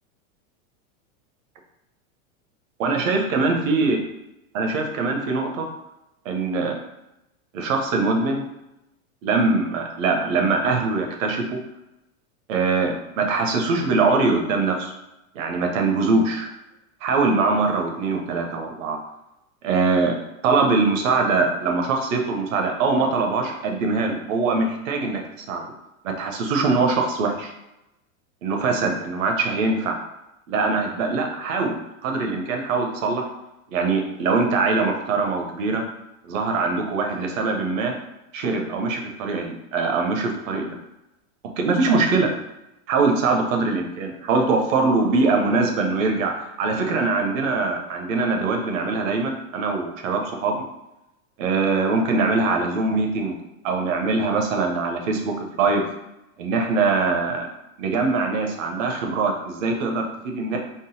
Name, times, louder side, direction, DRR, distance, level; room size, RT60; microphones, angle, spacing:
voice 1, 2.8-4.0 4.5-5.7 6.2-6.8 7.5-8.4 9.2-11.6 12.5-14.9 15.3-16.5 17.0-19.0 19.6-20.2 20.4-25.2 25.5-25.7 26.0-27.5 28.4-30.0 30.5-33.3 33.7-35.8 36.2-37.9 38.3-40.8 41.6-42.3 42.9-50.5 51.4-53.4 53.6-55.9 56.4-57.5 57.8-60.6, right 3 dB, 70° right, 3 dB, 0.9 m, -22 dB
3.8 x 2.0 x 4.0 m, 0.91 s
supercardioid pair, 135°, 41 cm